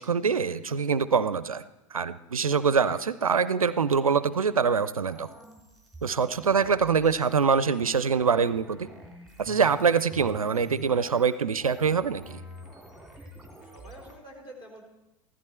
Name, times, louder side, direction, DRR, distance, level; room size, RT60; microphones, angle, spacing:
voice 1, 0.0-1.6 1.9-5.3 6.0-8.9 9.4-12.4, right 6 dB, 80° right, 16 dB, 0.5 m, -24 dB
sound 1, 5.0-14.1, equal, ahead, 3.2 m, -48 dB
voice 2, 13.6-14.8, right 1 dB, 25° left, 0 dB, 3.6 m, -47 dB
15.5 x 13.5 x 4.4 m, 0.99 s
figure-of-eight pair, 90°, 18 cm